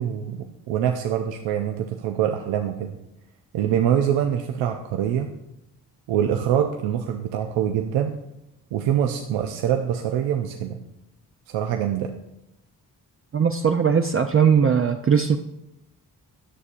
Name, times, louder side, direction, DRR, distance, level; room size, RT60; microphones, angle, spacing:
voice 1, 0.0-3.0 3.5-5.3 6.1-8.2 8.7-10.8 11.5-12.1, right 9 dB, 80° right, 4 dB, 0.6 m, -24 dB
voice 2, 13.3-15.4, right 7 dB, 30° right, 5 dB, 0.5 m, -19 dB
9.9 x 6.6 x 2.5 m, 0.87 s
supercardioid pair, 45°, 43 cm